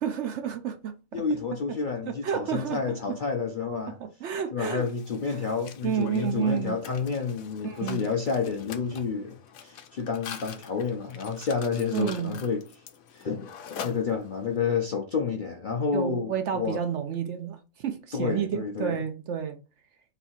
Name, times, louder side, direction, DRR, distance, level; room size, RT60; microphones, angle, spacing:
voice 1, 0.0-0.9 2.1-3.2 4.0-4.9 5.8-6.8 7.6-8.1 11.9-12.4 15.9-19.6, right 8 dB, 65° right, 0.8 m, -30 dB
voice 2, 1.1-4.0 4.5-12.7 13.1-16.8 18.1-19.0, left 5 dB, 55° left, 0.5 m, -30 dB
Mechanisms, 4.8-14.6, left 7 dB, 75° left, 1.1 m, -44 dB
4.0 x 2.7 x 4.2 m
omnidirectional pair, 1.5 m